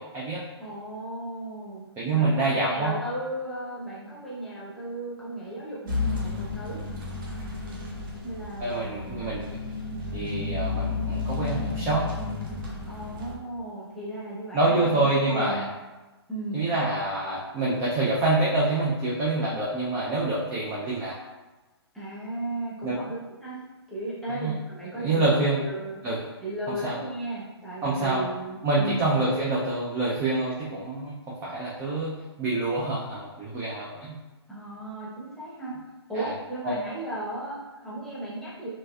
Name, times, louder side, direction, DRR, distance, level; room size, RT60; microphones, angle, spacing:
voice 1, 0.0-0.4 2.0-3.0 8.6-9.4 10.1-12.0 14.5-15.6 16.5-21.1 22.8-23.0 24.4-24.5 25.0-25.6 26.0-26.2 26.8-27.0 27.8-28.2 28.6-34.2 36.1-36.3 36.6-36.8, right 2 dB, 15° right, -5 dB, 0.4 m, -26 dB
voice 2, 0.6-6.8 8.2-9.2 12.9-15.7 16.3-16.6 21.9-23.6 23.9-25.3 25.6-26.0 26.4-29.1 34.5-35.7 36.1-38.7, right 1 dB, ahead, -9 dB, 0.8 m, -35 dB
sound 1, 5.9-13.4, left 3 dB, 50° right, 1.0 m, -32 dB
3.8 x 2.5 x 2.2 m, 1.1 s
hypercardioid pair, 135°, 14 cm